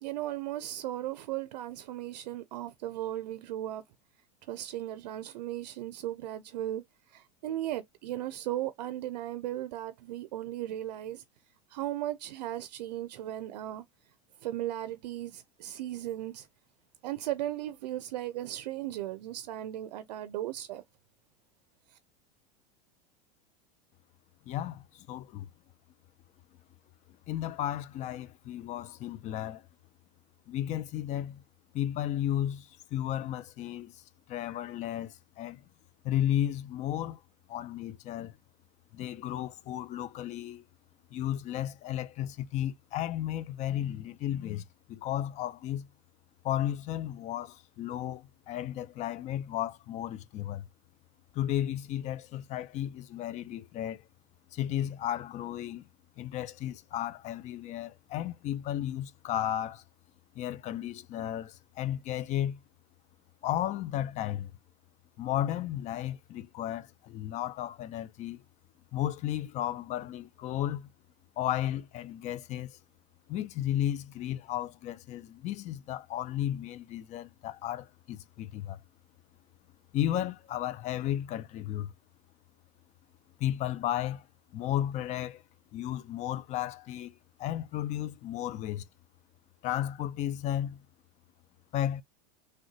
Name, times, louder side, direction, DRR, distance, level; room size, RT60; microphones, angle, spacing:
voice 1, 0.0-3.8 4.4-6.8 7.1-11.2 11.7-13.8 14.4-16.5 17.0-20.8 21.9-22.0, right 13 dB, 80° right, 0.5 m, -36 dB
voice 2, 24.5-25.5 27.3-29.7 30.5-31.4 31.7-34.0 34.3-35.6 36.0-37.2 37.5-38.4 38.9-40.6 41.1-45.9 46.4-50.7 51.3-54.1 54.5-55.9 56.2-59.8 60.4-62.6 63.4-64.5 65.2-68.4 68.9-70.9 71.4-72.8 73.3-78.8 79.9-81.9 83.4-84.3 84.5-85.4 85.7-88.8 89.6-90.8 91.7-92.0, left 12 dB, 35° left, 0.4 m, -34 dB
3.6 x 2.2 x 2.7 m
supercardioid pair, 115°, 21 cm